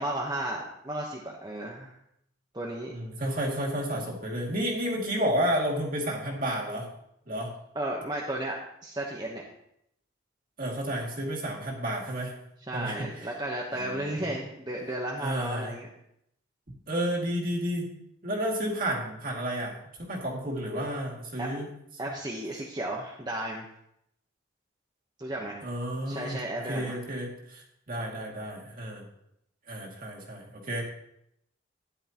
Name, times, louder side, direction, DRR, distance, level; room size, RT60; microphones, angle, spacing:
voice 1, 0.0-1.9 2.5-2.9 7.7-8.6 8.8-9.4 12.7-15.9 21.4-21.5 22.0-23.6 25.2-25.6 26.1-26.9, right 1 dB, 20° right, -2 dB, 1.0 m, -34 dB
voice 2, 2.9-6.9 7.3-7.5 10.6-12.3 12.7-13.3 13.7-14.3 15.2-15.7 16.9-17.9 18.2-21.7 22.0-22.1 25.6-26.4 26.7-29.0 29.7-30.8, equal, 45° right, -2 dB, 2.4 m, -31 dB
12.5 x 10.5 x 3.0 m, 0.76 s
head